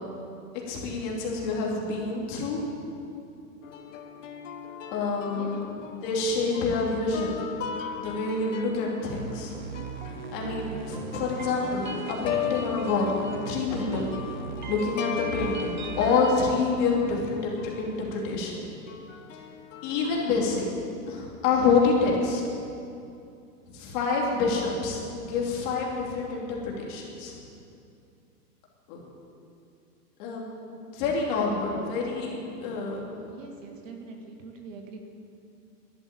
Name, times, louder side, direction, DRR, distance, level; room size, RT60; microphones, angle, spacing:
voice 1, 0.7-2.6 4.9-5.8 6.0-7.6 7.9-9.5 10.3-13.1 13.4-14.1 14.7-18.6 19.8-20.6 21.1-22.4 23.7-27.3 28.9-29.0 30.2-30.4 30.9-33.0, left 4 dB, 30° left, -2 dB, 2.8 m, -27 dB
sound 1, 3.6-18.0 18.9-20.4, left 7 dB, 50° left, 1.3 m, -38 dB
voice 2, 5.3-5.6 33.3-35.0, right 4 dB, 50° right, 3 dB, 2.0 m, -43 dB
sound 2, 9.1-16.5, right 6 dB, 30° right, 0.4 m, -39 dB
12.5 x 10.5 x 8.8 m, 2.6 s
hypercardioid pair, 165°, 48 cm